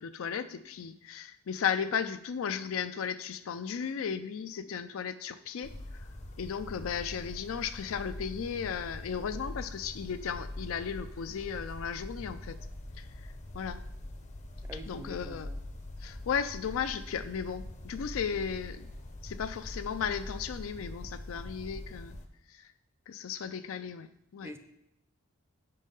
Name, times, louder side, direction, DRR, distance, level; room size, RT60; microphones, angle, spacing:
voice 1, 0.0-6.1 6.4-12.6 13.0-13.8 14.7-15.5 16.0-18.9 19.2-22.2 22.5-22.7 23.1-24.5, left 7 dB, 65° left, 12 dB, 0.4 m, -35 dB
sound 1, 5.6-22.3, left 1 dB, 35° left, 0.7 m, -43 dB
voice 2, 14.6-15.6 24.4-24.6, equal, 10° right, 8 dB, 0.5 m, -45 dB
6.3 x 5.4 x 5.4 m, 0.79 s
head